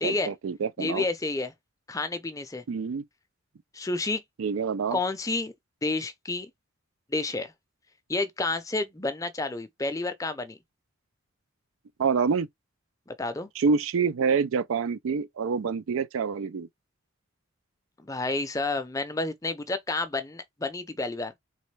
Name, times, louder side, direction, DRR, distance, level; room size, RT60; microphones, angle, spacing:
voice 1, 0.0-1.0 2.7-3.0 4.4-5.0 12.0-12.5 13.6-16.7, right 5 dB, 80° right, 0.4 m, -27 dB
voice 2, 0.8-1.5 1.9-2.6 3.7-4.2 4.9-5.5 5.8-6.5 7.1-7.5 8.1-10.6 13.1-13.5 18.0-21.3, left 3 dB, 15° left, 0.5 m, -30 dB
4.1 x 3.1 x 3.2 m
head